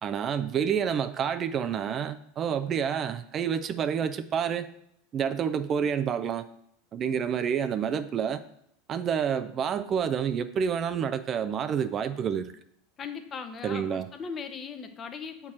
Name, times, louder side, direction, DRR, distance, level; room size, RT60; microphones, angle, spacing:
voice 1, 0.0-4.7 5.1-6.5 6.9-8.4 8.9-12.5 13.6-14.1, right 7 dB, 35° right, 11 dB, 0.5 m, -28 dB
voice 2, 13.0-15.5, left 6 dB, 30° left, 7 dB, 0.9 m, -38 dB
8.2 x 4.5 x 4.4 m, 0.72 s
hypercardioid pair, 85°, 0 cm